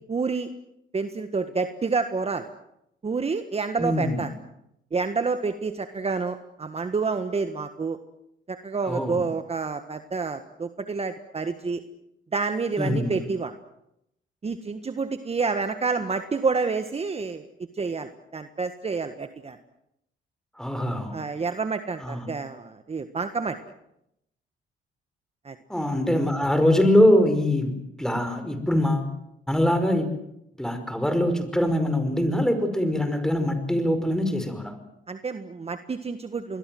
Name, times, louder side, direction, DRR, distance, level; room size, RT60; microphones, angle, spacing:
voice 1, 0.1-0.5 0.9-2.5 3.0-4.3 4.9-8.0 8.5-11.8 12.3-13.5 14.4-17.5 17.7-19.6 21.1-23.6 25.4-25.5 35.1-36.6, right 4 dB, 30° right, 9 dB, 1.6 m, -28 dB
voice 2, 3.8-4.2 8.9-9.2 12.8-13.1 20.6-21.2 22.0-22.3 25.7-29.1 29.5-30.2 30.6-34.7, left 1 dB, 5° left, 9 dB, 5.4 m, -23 dB
26.5 x 21.5 x 7.9 m, 0.81 s
cardioid pair, 90°, 20 cm